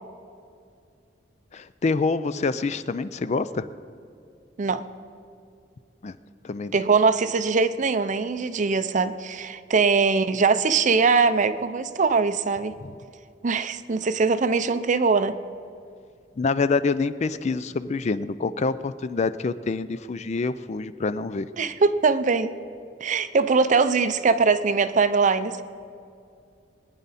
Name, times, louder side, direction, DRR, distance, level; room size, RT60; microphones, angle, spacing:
voice 1, 1.5-3.7 6.0-6.2 6.4-6.8 16.4-21.5, left 4 dB, 40° left, 14 dB, 0.4 m, -26 dB
voice 2, 6.7-12.7 13.4-15.3 21.6-22.5 23.0-25.6, right 4 dB, 45° right, 12 dB, 0.5 m, -22 dB
22.5 x 9.8 x 4.2 m, 2.4 s
head